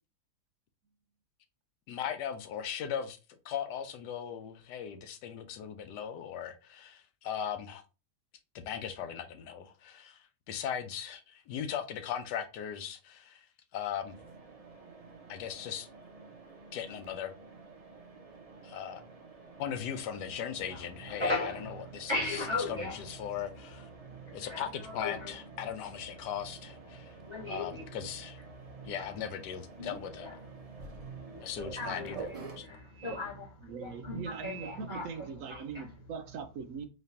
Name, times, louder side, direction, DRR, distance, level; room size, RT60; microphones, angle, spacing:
voice 1, 1.9-3.2 3.4-7.8 8.5-10.0 10.5-11.2 11.5-13.5 13.7-14.1 15.3-15.9 16.7-17.3 18.6-19.0 19.6-21.3 21.9-22.4 22.7-23.9 24.3-27.1 27.5-28.4 28.8-30.3 31.4-32.3 32.6-32.7, left 8 dB, 90° left, 1.2 m, -38 dB
Mechanisms, 14.1-32.6, right 4 dB, 40° right, 0.5 m, -50 dB
voice 2, 20.7-23.3 24.0-25.4 26.9-28.0 28.5-29.1 29.8-35.9, left 2 dB, 20° right, 1.0 m, -38 dB
voice 3, 33.6-36.8, right 5 dB, 70° right, 0.8 m, -41 dB
4.0 x 3.1 x 2.8 m
omnidirectional pair, 1.8 m